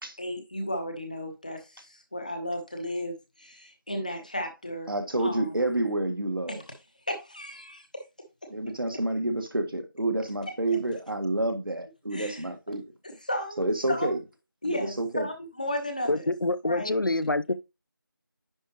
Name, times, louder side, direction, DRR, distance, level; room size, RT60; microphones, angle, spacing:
voice 1, 0.2-4.9 5.2-5.5 6.5-6.6 7.1-8.0 12.1-12.4 13.0-13.6 13.9-14.2 14.6-16.3 16.6-16.9, left 1 dB, 20° left, 1.1 m, -34 dB
voice 2, 4.9-6.6 8.5-12.8 13.6-14.2 14.7-15.3, right 2 dB, 75° right, 1.7 m, -29 dB
voice 3, 16.1-17.5, left 2 dB, 70° left, 0.6 m, -26 dB
10.0 x 4.9 x 3.0 m
figure-of-eight pair, 175°, 11 cm